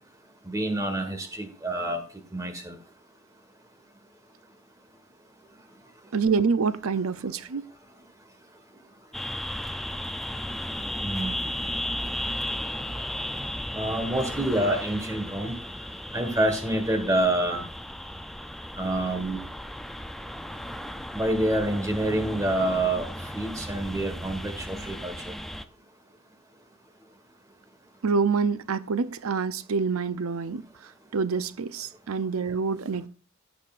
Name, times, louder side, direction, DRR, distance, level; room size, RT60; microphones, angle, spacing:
voice 1, 0.4-2.0 2.3-2.8 11.0-11.4 13.7-15.6 16.1-17.6 18.8-19.4 21.1-23.1 23.3-25.3, right 1 dB, 15° right, 1.5 m, -27 dB
voice 2, 6.1-7.7 28.0-33.1, right 5 dB, 70° right, 0.6 m, -27 dB
sound 1, 9.1-25.7, left 1 dB, ahead, 0.4 m, -35 dB
16.0 x 6.6 x 2.5 m
head